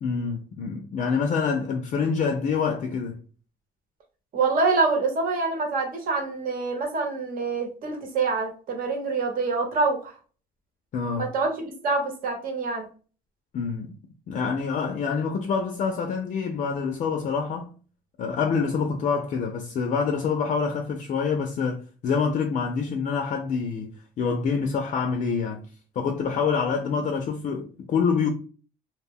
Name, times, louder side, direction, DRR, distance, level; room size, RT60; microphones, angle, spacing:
voice 1, 0.0-3.2 10.9-11.3 13.5-14.0 14.3-17.7 18.2-25.7 26.0-28.3, left 5 dB, 45° left, 0.4 m, -26 dB
voice 2, 4.3-10.1 11.2-12.9, right 4 dB, 55° right, 1.0 m, -26 dB
2.2 x 2.1 x 3.5 m
cardioid pair, 110°, 17 cm